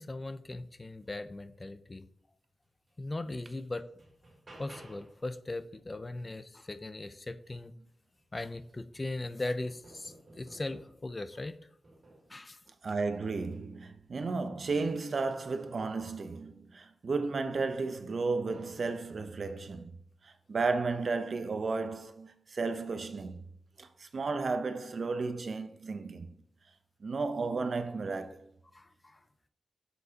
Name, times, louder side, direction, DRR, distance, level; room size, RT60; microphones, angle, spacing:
voice 1, 0.0-2.0 3.0-3.9 4.6-7.7 8.3-11.6 12.3-12.6 28.7-29.2, left 2 dB, 25° left, 0.4 m, -39 dB
sound 1, 2.9-3.0 3.4-5.3 7.6-7.7 8.2-11.1 11.8-12.4 13.4-13.7, right 1 dB, 30° right, 2.6 m, -55 dB
voice 2, 12.8-19.9 20.2-23.4 23.8-26.3 27.0-28.5, right 4 dB, 50° right, 0.7 m, -33 dB
10.0 x 7.0 x 2.8 m
wide cardioid pair, 135°, 0 cm